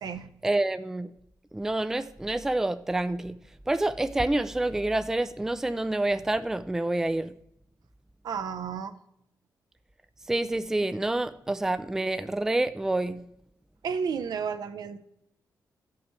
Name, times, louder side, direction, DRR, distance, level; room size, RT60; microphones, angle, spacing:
voice 1, 0.4-1.1 1.5-3.4 3.7-7.3 10.3-13.3, right 2 dB, 5° right, 0.3 m, -27 dB
voice 2, 8.2-8.9 13.8-15.0, right 6 dB, 75° right, 0.7 m, -32 dB
13.5 x 5.8 x 3.1 m
wide cardioid pair, 125°, 7 cm